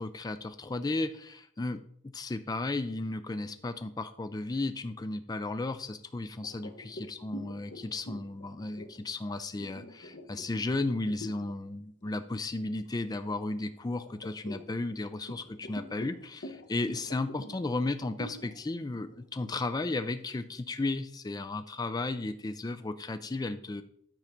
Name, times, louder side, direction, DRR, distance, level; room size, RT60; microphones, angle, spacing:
voice 1, 0.0-1.8 2.1-23.8, left 2 dB, 20° left, 10 dB, 0.4 m, -34 dB
sound 1, 6.4-11.6 12.0-12.3 12.7-13.5 14.0-20.8, left 1 dB, 55° left, 1.1 m, -46 dB
9.1 x 3.8 x 5.8 m, 0.66 s
head